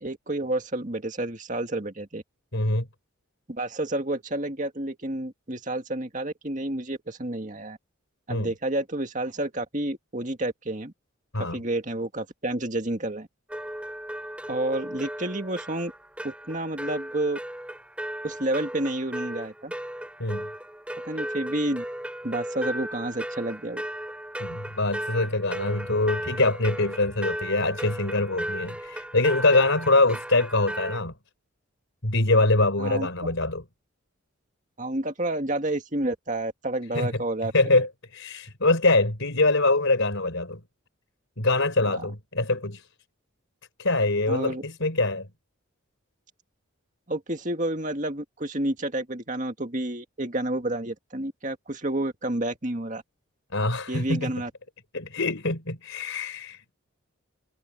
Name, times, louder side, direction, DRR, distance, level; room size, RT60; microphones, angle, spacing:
voice 1, 0.0-2.2 3.5-7.8 8.3-10.9 11.4-13.3 14.5-15.9 16.2-17.4 18.2-19.7 21.0-21.8 22.2-23.8 32.8-33.3 34.8-37.8 44.3-44.6 47.1-53.0 53.9-54.5, right 1 dB, 35° right, 2.0 m, -30 dB
voice 2, 2.5-2.9 8.3-8.5 11.3-11.6 20.2-20.5 24.4-31.1 32.0-33.6 36.9-37.2 37.5-40.6 41.4-42.9 43.8-45.3 53.5-54.3 54.9-56.7, left 2 dB, 70° left, 4.0 m, -24 dB
sound 1, 13.5-31.0, right 1 dB, 5° right, 2.6 m, -36 dB
head